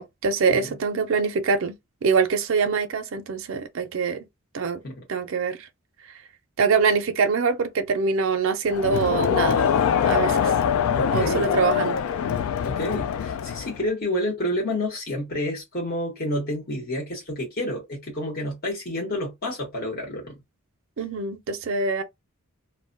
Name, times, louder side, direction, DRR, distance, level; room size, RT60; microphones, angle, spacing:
voice 1, 0.0-1.8 2.0-4.2 4.5-4.8 5.1-5.6 6.6-9.6 10.0-10.5 11.1-12.0 21.0-22.0, right 5 dB, 65° right, 0.5 m, -24 dB
Crowd, 8.7-13.9, left 8 dB, 85° left, 0.3 m, -23 dB
voice 2, 10.9-11.5 12.6-20.4, left 1 dB, 45° left, 1.0 m, -29 dB
2.2 x 2.1 x 3.8 m
head